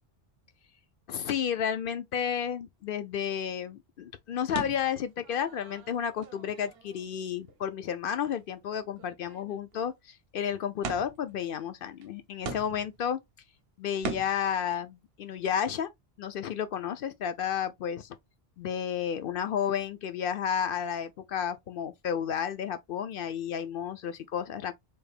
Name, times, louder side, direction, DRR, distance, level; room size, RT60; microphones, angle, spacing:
voice 1, 1.1-13.2 13.8-15.9 16.2-18.2 18.6-24.7, left 8 dB, 65° left, 0.7 m, -32 dB
sound 1, 4.5-7.1 7.5-7.6 8.2-8.4 8.6-8.7 8.9-9.9 10.8-11.3 12.0-12.1 12.4-13.1 14.0-14.5, right 3 dB, 75° right, 0.9 m, -40 dB
3.4 x 3.4 x 2.4 m
omnidirectional pair, 1.1 m